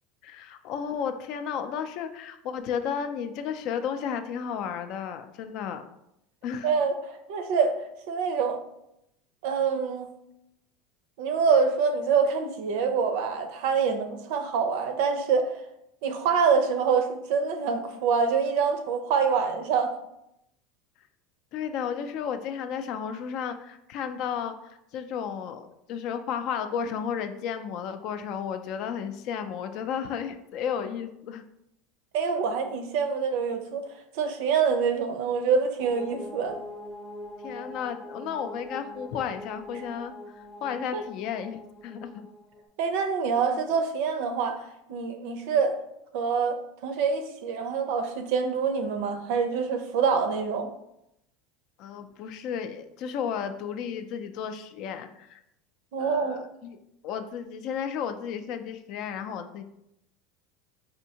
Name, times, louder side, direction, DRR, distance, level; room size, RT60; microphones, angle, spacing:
voice 1, 0.2-5.8 6.4-6.7 21.5-31.4 37.4-40.1 40.6-42.2 51.8-55.4 56.0-56.8 57.0-59.6, left 7 dB, 55° left, 8 dB, 0.4 m, -33 dB
voice 2, 6.6-8.6 9.4-10.1 11.2-15.5 16.0-20.0 32.1-33.9 34.1-36.6 40.9-41.0 42.8-44.6 44.9-45.8 46.1-46.6 46.8-50.7 55.9-56.4, right 6 dB, 70° right, 6 dB, 0.5 m, -25 dB
sound 1, 35.8-42.7, left 1 dB, 20° left, 0.7 m, -43 dB
4.2 x 2.6 x 2.8 m, 0.81 s
supercardioid pair, 140°, 0 cm